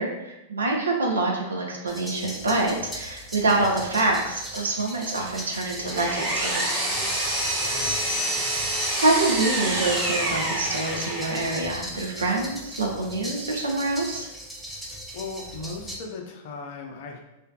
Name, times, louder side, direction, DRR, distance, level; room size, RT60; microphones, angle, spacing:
voice 1, 0.0-7.0 9.0-14.3, right 2 dB, 80° right, -1 dB, 0.5 m, -26 dB
sound 1, 1.9-15.9, equal, 5° right, 0.5 m, -39 dB
Power tool, 5.5-11.6, right 1 dB, 25° right, 1.0 m, -27 dB
voice 2, 7.6-8.5 15.1-17.2, left 4 dB, 55° left, 2 dB, 0.5 m, -38 dB
2.5 x 2.2 x 2.3 m, 0.93 s
figure-of-eight pair, 100°, 0 cm